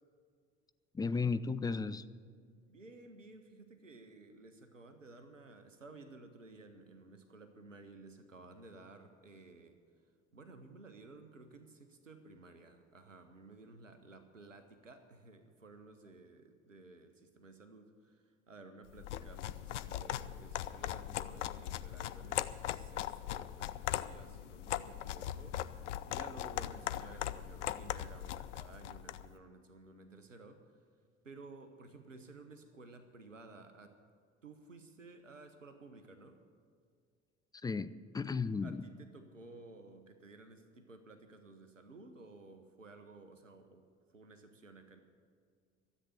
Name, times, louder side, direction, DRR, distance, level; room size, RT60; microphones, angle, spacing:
voice 1, 0.9-2.0 37.6-38.8, left 4 dB, 10° left, 13 dB, 0.4 m, -34 dB
voice 2, 2.7-9.8 10.3-30.7 31.2-34.0 34.4-36.4 38.6-45.0, right 3 dB, 90° right, 8 dB, 0.8 m, -55 dB
sound 1, 18.9-29.3, left 12 dB, 75° left, 0.5 m, -40 dB
13.0 x 8.1 x 9.0 m, 2.1 s
figure-of-eight pair, 55°, 37 cm